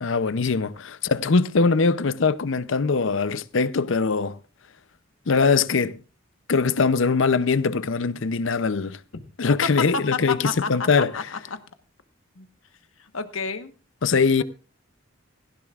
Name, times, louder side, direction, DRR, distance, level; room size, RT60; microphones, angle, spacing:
voice 1, 0.0-4.4 5.3-6.0 6.5-9.0 9.4-10.4 10.7-11.1 14.0-14.4, left 4 dB, 70° left, 0.6 m, -22 dB
voice 2, 10.1-11.4 12.3-12.5 13.0-13.7, left 5 dB, 85° left, 1.2 m, -30 dB
17.0 x 15.5 x 2.4 m
head